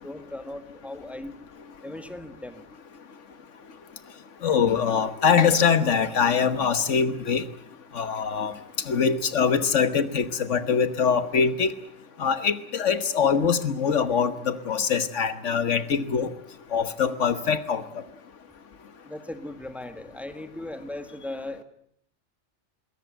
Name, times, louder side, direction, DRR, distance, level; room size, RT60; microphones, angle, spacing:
voice 1, 0.0-1.3 1.8-2.6 19.1-21.6, left 1 dB, ahead, 9 dB, 1.5 m, -38 dB
voice 2, 4.4-7.4 7.9-8.5 8.9-11.7 12.2-16.3 16.7-17.8, left 6 dB, 80° left, 12 dB, 1.5 m, -23 dB
22.0 x 17.5 x 8.9 m, 0.68 s
omnidirectional pair, 1.2 m